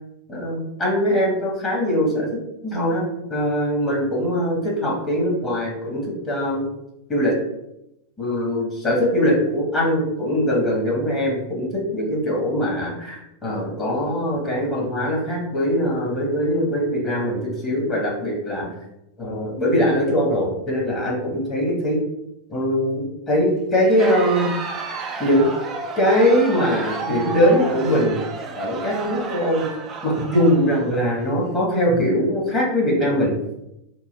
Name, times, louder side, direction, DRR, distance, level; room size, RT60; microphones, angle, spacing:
voice 1, 0.3-2.3 2.6-3.0 3.3-6.6 7.1-7.4 8.2-18.7 19.2-22.0 22.5-24.5 25.2-25.5 26.0-28.2 28.5-29.7 30.0-33.3, equal, 20° left, -3 dB, 1.3 m, -21 dB
Crowd, 23.8-31.3, right 4 dB, 25° right, 0.5 m, -32 dB
3.6 x 2.6 x 3.2 m, 0.86 s
figure-of-eight pair, 90°, 0 cm